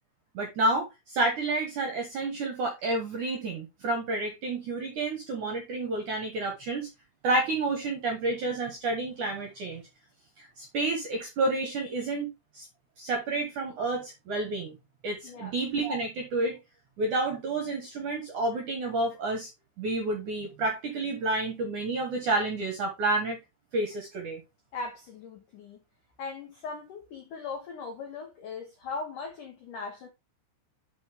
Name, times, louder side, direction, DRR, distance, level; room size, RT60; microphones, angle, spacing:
voice 1, 0.3-6.9 7.2-9.8 10.4-12.3 12.5-12.7 13.0-14.8 15.0-16.6 17.0-19.5 19.8-23.4 23.7-24.4, right 2 dB, 65° right, 2.0 m, -30 dB
voice 2, 15.2-15.6 24.7-25.8 26.2-30.1, left 4 dB, 85° left, 1.8 m, -39 dB
10.5 x 4.4 x 3.6 m
omnidirectional pair, 5.8 m